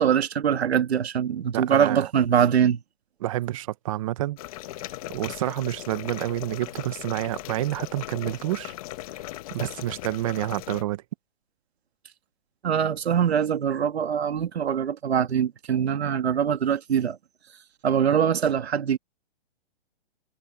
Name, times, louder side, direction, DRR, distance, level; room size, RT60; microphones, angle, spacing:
voice 1, 0.0-2.8 12.6-17.2 17.8-19.0, right 8 dB, 85° right, 2.3 m, -23 dB
voice 2, 1.5-2.1 3.2-4.4 5.1-8.7 9.5-11.0, right 15 dB, 35° right, 0.7 m, -29 dB
sound 1, 4.4-10.8, left 16 dB, 35° left, 1.2 m, -38 dB
hypercardioid pair, 160°, 31 cm